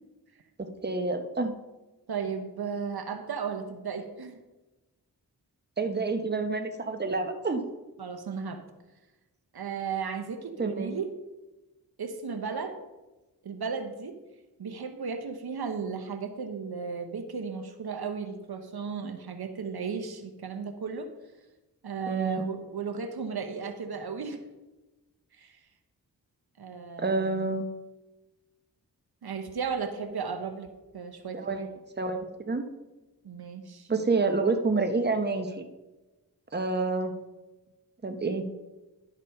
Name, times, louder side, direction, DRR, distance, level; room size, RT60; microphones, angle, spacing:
voice 1, 0.6-1.5 5.8-7.6 10.6-10.9 22.1-22.4 27.0-27.6 31.3-31.6 32.0-32.7 33.9-35.6 36.5-37.2 38.0-38.5, right 3 dB, 25° right, 6 dB, 1.0 m, -28 dB
voice 2, 2.1-4.4 8.0-8.6 9.5-11.1 12.0-12.8 13.4-14.2 14.6-21.1 21.8-24.4 25.3-25.6 26.6-27.5 29.2-30.7 30.9-31.7 33.2-33.9, right 5 dB, 65° right, 6 dB, 1.0 m, -35 dB
11.5 x 4.1 x 5.4 m, 1.1 s
cardioid pair, 45°, 40 cm